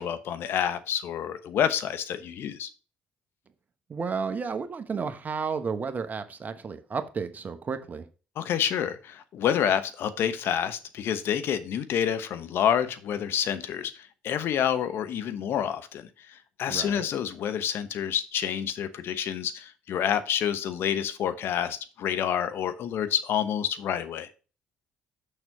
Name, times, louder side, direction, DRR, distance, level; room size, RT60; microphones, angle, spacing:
voice 1, 0.0-2.7 8.4-13.9 14.2-16.0 16.3-24.3, left 9 dB, 65° left, 11 dB, 0.9 m, -28 dB
voice 2, 3.9-8.1 16.7-17.0, right 5 dB, 40° right, 9 dB, 1.0 m, -32 dB
6.4 x 6.2 x 3.6 m, 0.34 s
hypercardioid pair, 55°, 4 cm